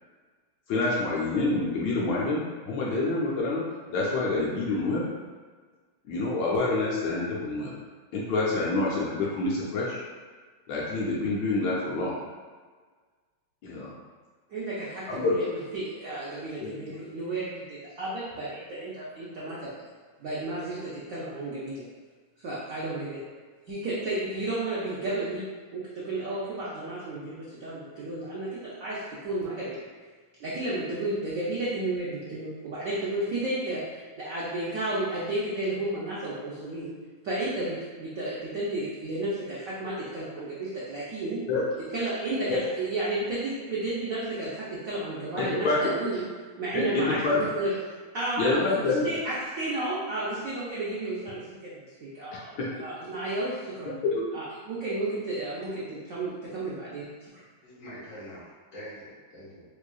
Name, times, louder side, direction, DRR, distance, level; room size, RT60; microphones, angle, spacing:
voice 1, 0.7-3.6 3.9-5.1 6.1-7.7 8.1-10.0 10.7-12.2 13.6-13.9 15.1-15.5 16.6-16.7 41.5-41.6 42.5-42.6 45.4-45.8 46.7-47.4 48.4-49.0 52.6-52.7 54.0-54.2, left 3 dB, 75° left, -5 dB, 1.2 m, -27 dB
voice 2, 14.5-19.7 20.2-21.8 22.4-23.2 23.7-25.5 25.7-29.8 30.4-36.9 37.2-41.4 41.9-46.3 46.6-47.7 48.1-53.9 54.3-57.0 57.3-57.4, right 2 dB, 80° right, -8 dB, 0.7 m, -32 dB
voice 3, 57.6-59.6, equal, 45° left, -9 dB, 1.3 m, -44 dB
4.6 x 2.4 x 2.3 m, 1.5 s
omnidirectional pair, 2.2 m